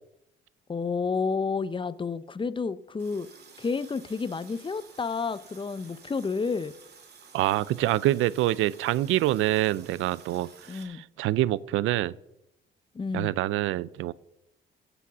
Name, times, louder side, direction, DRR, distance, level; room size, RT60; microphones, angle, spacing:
voice 1, 0.7-3.3 3.6-6.7 10.7-11.0 12.9-13.3, left 5 dB, 25° left, 16 dB, 0.6 m, -30 dB
Water tap faucet, 3.0-10.8, right 5 dB, 55° right, 2.5 m, -52 dB
voice 2, 7.3-12.1 13.1-14.1, right 15 dB, 90° right, 20 dB, 0.5 m, -26 dB
16.5 x 7.0 x 6.1 m, 0.83 s
cardioid pair, 90°, 20 cm